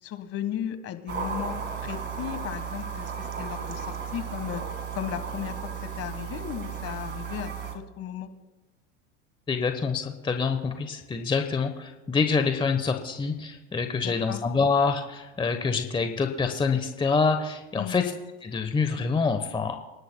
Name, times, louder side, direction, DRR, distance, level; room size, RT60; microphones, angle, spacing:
voice 1, 0.0-4.6 4.9-5.5 6.0-8.3 14.0-14.4 17.7-18.1, left 10 dB, 40° left, 9 dB, 1.5 m, -35 dB
sound 1, 1.1-7.7, right 6 dB, 30° right, 2.1 m, -35 dB
voice 2, 9.5-18.1 18.4-19.8, left 4 dB, 15° left, 7 dB, 1.0 m, -26 dB
28.0 x 11.5 x 2.3 m, 1.1 s
hypercardioid pair, 100°, 36 cm